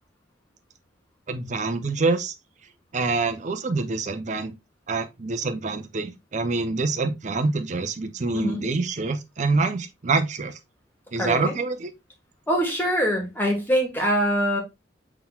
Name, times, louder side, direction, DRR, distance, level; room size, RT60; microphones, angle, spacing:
voice 1, 1.3-2.3 2.9-4.6 4.9-10.5 11.1-11.9, right 3 dB, 40° right, 0.5 m, -26 dB
voice 2, 8.3-8.7 11.2-11.5 12.5-14.6, equal, 10° left, 1.4 m, -23 dB
5.8 x 3.7 x 2.3 m
head